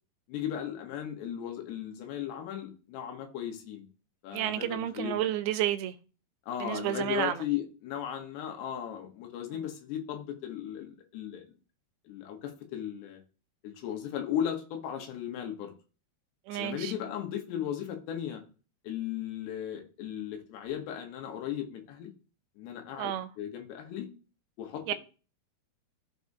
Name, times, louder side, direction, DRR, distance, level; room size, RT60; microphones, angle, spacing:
voice 1, 0.3-3.8 4.2-5.2 6.5-11.5 12.1-13.2 13.6-15.7 16.5-18.4 18.8-22.1 22.6-24.1 24.6-24.9, left 10 dB, 80° left, 3.3 m, -36 dB
voice 2, 4.3-6.0 6.6-7.4 9.5-9.6 16.5-16.9 23.0-23.3 24.9-25.0, right 12 dB, 80° right, 2.4 m, -31 dB
14.0 x 4.6 x 2.7 m
omnidirectional pair, 4.9 m